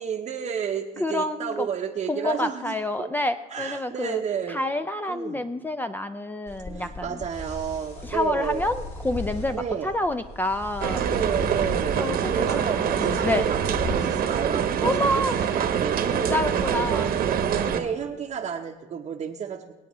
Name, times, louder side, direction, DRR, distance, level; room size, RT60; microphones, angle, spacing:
voice 1, 0.0-3.1 3.5-4.6 5.1-5.4 6.7-8.7 9.5-10.0 10.9-12.0 12.3-16.4 16.7-19.7, right 7 dB, 40° right, 1 dB, 0.8 m, -31 dB
voice 2, 1.0-1.7 2.1-4.2 4.5-7.1 8.0-11.1 12.0-13.4 14.8-15.3 16.1-17.1, left 1 dB, 10° left, 9 dB, 0.4 m, -28 dB
sound 1, 6.5-13.9, left 1 dB, 50° left, 5.1 m, -37 dB
sound 2, 10.8-17.8, right 8 dB, 60° right, 1.0 m, -25 dB
24.5 x 8.5 x 3.0 m, 1.2 s
cardioid pair, 110°, 17 cm